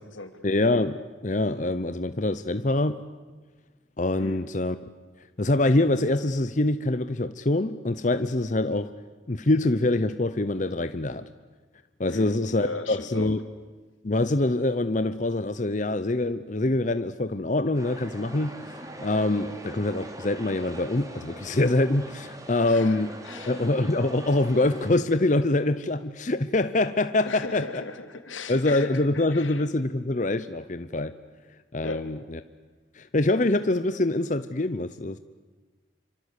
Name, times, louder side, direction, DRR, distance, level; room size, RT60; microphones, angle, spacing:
voice 1, 0.4-3.0 4.0-4.8 5.4-8.9 9.3-11.3 12.0-13.4 14.0-18.6 19.0-23.1 23.5-27.8 28.5-31.1 31.7-32.4 33.0-35.2, left 2 dB, 40° left, 0.8 m, -25 dB
voice 2, 12.1-13.3 22.5-23.6 27.2-29.9 31.8-32.1, left 3 dB, 90° left, 2.8 m, -38 dB
sound 1, 17.7-24.9, right 1 dB, 15° right, 2.7 m, -42 dB
27.5 x 25.0 x 8.4 m
head